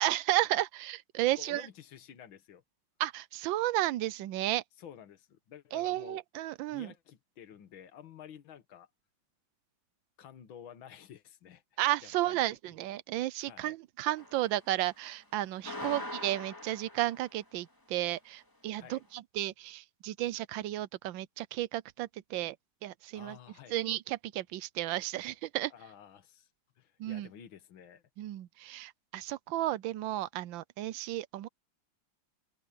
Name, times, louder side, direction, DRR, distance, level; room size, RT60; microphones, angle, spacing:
voice 1, 0.0-1.7 3.0-4.6 5.7-6.9 11.8-22.6 22.8-23.4 23.7-25.7 27.0-27.3 28.2-31.5, right 15 dB, 75° right, 1.3 m, -33 dB
voice 2, 1.4-2.6 4.8-6.2 6.7-8.9 10.2-12.8 13.4-13.7 15.8-16.0 18.8-19.0 23.1-23.8 25.7-28.0, left 9 dB, 75° left, 2.1 m, -52 dB
sound 1, 14.2-14.5 15.6-17.4, left 1 dB, 10° left, 2.1 m, -42 dB
omnidirectional pair, 2.2 m